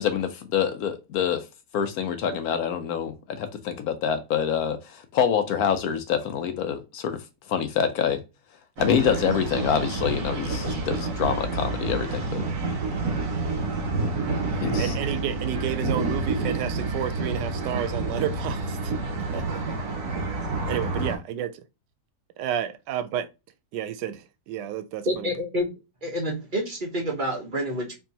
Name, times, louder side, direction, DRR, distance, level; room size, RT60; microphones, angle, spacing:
voice 1, 0.0-1.4 1.7-7.2 7.5-8.2 8.8-12.4 14.6-14.9, left 8 dB, 70° left, 1.0 m, -26 dB
sound 1, 8.8-21.2, right 3 dB, 65° right, 1.8 m, -28 dB
voice 2, 14.5-18.9 19.3-19.8 20.7-21.5 22.4-23.2 23.7-25.3, right 10 dB, 90° right, 1.2 m, -31 dB
voice 3, 25.0-25.7 26.0-27.9, equal, 35° right, 1.0 m, -28 dB
4.6 x 2.8 x 2.8 m
omnidirectional pair, 1.8 m